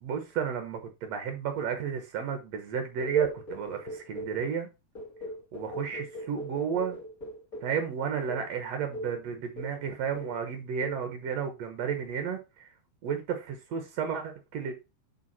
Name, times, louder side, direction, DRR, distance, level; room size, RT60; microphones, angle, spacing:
voice 1, 0.0-4.7 5.5-7.0 7.6-12.7 13.0-14.7, right 7 dB, 85° right, 1.4 m, -32 dB
sound 1, 3.0-4.4 4.9-7.8 8.3-8.5 8.9-9.2 9.6-9.9 10.1-10.4 10.8-11.1, equal, 35° left, 1.4 m, -40 dB
9.4 x 4.0 x 4.2 m
omnidirectional pair, 4.8 m